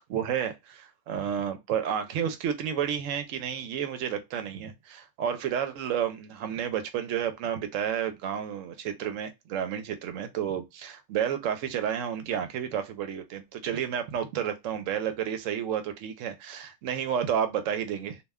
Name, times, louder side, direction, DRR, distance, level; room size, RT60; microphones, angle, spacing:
voice 1, 0.0-18.2, right 9 dB, 80° right, 0.9 m, -31 dB
2.5 x 2.1 x 3.4 m
omnidirectional pair, 1.3 m